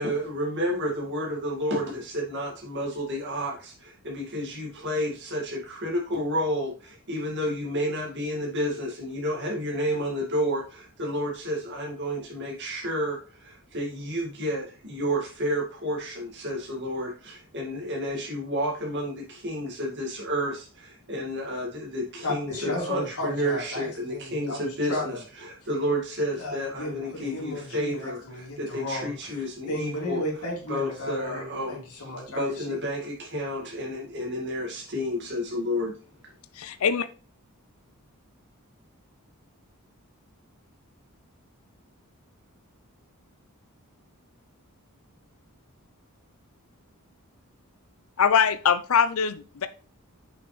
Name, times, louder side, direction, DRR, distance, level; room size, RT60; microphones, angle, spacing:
voice 1, 0.0-25.1 25.7-30.2 30.7-31.8 32.4-35.9, equal, 55° right, -2 dB, 2.0 m, -30 dB
voice 2, 22.2-25.2 26.4-32.9, left 1 dB, 85° left, -3 dB, 2.7 m, -34 dB
voice 3, 36.6-37.1 48.2-49.3, left 7 dB, 70° left, 12 dB, 0.5 m, -22 dB
7.0 x 5.7 x 3.2 m, 0.37 s
head